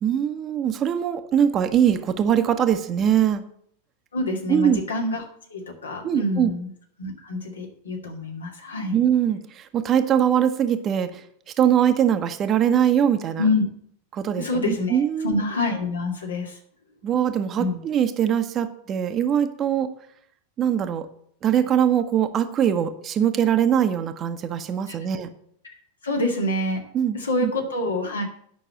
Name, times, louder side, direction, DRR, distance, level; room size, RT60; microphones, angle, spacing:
voice 1, 0.0-3.4 4.5-4.8 6.0-6.5 8.9-11.2 11.6-13.5 14.1-15.4 17.0-19.9 20.6-21.1 21.4-25.3 26.9-27.5, right 9 dB, 30° right, 9 dB, 1.0 m, -22 dB
voice 2, 4.1-5.2 5.5-6.7 7.0-9.0 13.4-13.6 14.4-16.6 17.6-17.8 24.9-25.0 26.0-26.8 27.1-28.2, left 2 dB, 70° left, 1 dB, 2.2 m, -26 dB
9.3 x 6.0 x 7.6 m, 0.65 s
figure-of-eight pair, 90°, 0 cm